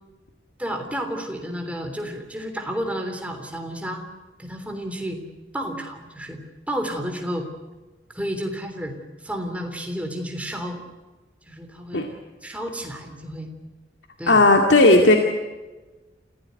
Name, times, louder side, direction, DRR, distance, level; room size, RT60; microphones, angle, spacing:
voice 1, 0.6-4.0 4.4-5.2 5.5-6.4 6.7-7.5 8.1-9.0 9.2-10.8 11.5-12.0 12.4-13.5 14.2-14.4, equal, 10° right, 4 dB, 3.3 m, -31 dB
voice 2, 14.3-15.2, left 2 dB, 80° left, 3 dB, 2.2 m, -14 dB
28.5 x 16.5 x 9.5 m, 1.2 s
head